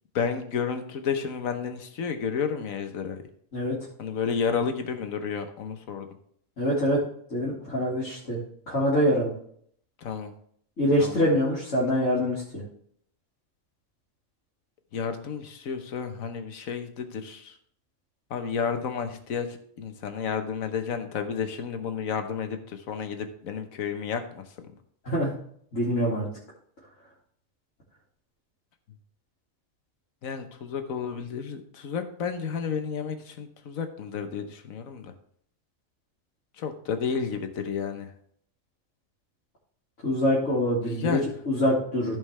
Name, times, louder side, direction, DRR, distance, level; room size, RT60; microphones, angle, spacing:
voice 1, 0.1-3.2 4.0-6.1 10.0-10.3 11.0-11.3 14.9-17.5 18.3-24.4 30.2-35.1 36.6-38.1 40.8-41.3, left 6 dB, 85° left, 7 dB, 1.4 m, -31 dB
voice 2, 6.6-7.0 7.3-8.4 8.7-9.3 10.8-12.4 25.1-25.3 25.7-26.3 40.0-41.1 41.5-42.2, equal, 65° left, -8 dB, 2.5 m, -24 dB
14.5 x 5.3 x 3.3 m, 0.64 s
omnidirectional pair, 1.4 m